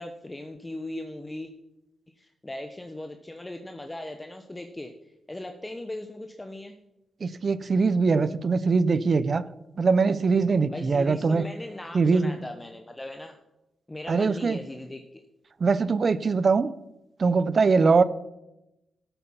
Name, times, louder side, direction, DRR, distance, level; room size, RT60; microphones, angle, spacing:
voice 1, 0.0-1.5 2.2-4.9 5.3-6.7 10.7-13.4 13.9-15.2 17.8-18.0, left 1 dB, 20° left, 1.1 m, -38 dB
voice 2, 7.2-9.4 9.8-11.5 11.9-12.3 14.1-14.6 15.6-16.7 17.2-18.0, right 4 dB, 50° right, 0.6 m, -22 dB
12.5 x 8.4 x 5.7 m
cardioid pair, 70°, 0 cm